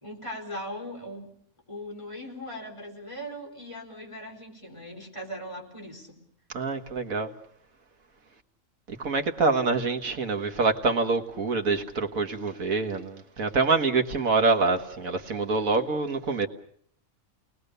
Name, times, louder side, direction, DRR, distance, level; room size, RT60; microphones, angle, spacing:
voice 1, 0.0-1.3 1.7-6.2, equal, 20° left, 4.7 m, -39 dB
voice 2, 6.5-7.3 8.9-16.5, right 3 dB, 75° right, 2.0 m, -26 dB
29.0 x 20.0 x 6.8 m
omnidirectional pair, 1.5 m